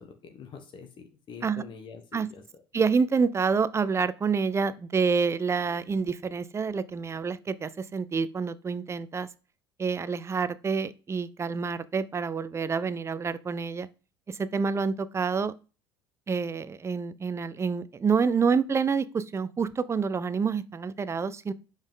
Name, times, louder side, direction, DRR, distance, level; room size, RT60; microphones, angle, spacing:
voice 1, 0.0-2.4, left 6 dB, 45° left, 1.2 m, -45 dB
voice 2, 2.7-9.3 9.8-13.9 14.3-15.5 16.3-21.5, right 5 dB, 25° right, 0.5 m, -27 dB
5.3 x 4.9 x 3.7 m
hypercardioid pair, 65°, 12 cm